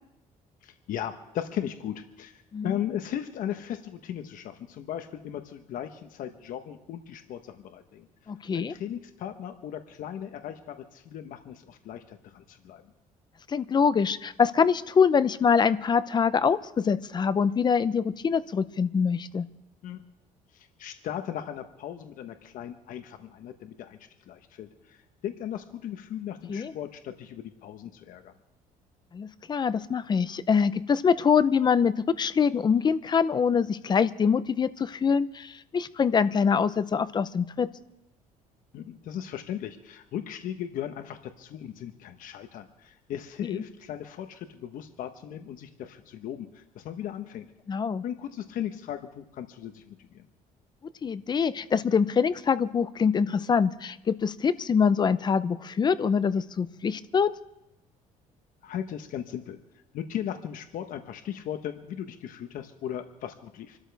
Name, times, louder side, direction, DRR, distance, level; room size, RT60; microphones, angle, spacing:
voice 1, 0.6-8.1 8.5-12.8 19.8-20.0 20.5-24.0 24.3-28.3 38.7-47.5 48.0-50.3 58.6-59.6 59.9-63.8, left 10 dB, 70° left, 7 dB, 1.1 m, -37 dB
voice 2, 8.3-8.7 13.5-19.5 26.5-26.7 29.1-37.7 43.5-43.6 47.7-48.0 51.0-57.3, left 6 dB, 30° left, 14 dB, 0.7 m, -24 dB
27.0 x 13.0 x 3.5 m, 0.89 s
cardioid pair, 120°, 15 cm